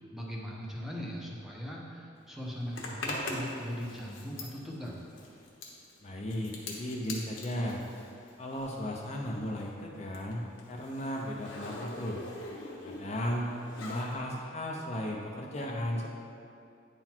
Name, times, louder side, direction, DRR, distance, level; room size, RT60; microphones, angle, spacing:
voice 1, 0.1-5.0, equal, ahead, -4 dB, 0.9 m, -39 dB
Zipper (clothing), 2.7-8.9 9.2-14.1, left 2 dB, 90° left, 1.1 m, -43 dB
voice 2, 6.0-7.8 8.4-12.2 12.8-13.5 13.8-16.1, left 1 dB, 35° left, -1 dB, 0.5 m, -35 dB
9.7 x 4.0 x 4.4 m, 2.5 s
head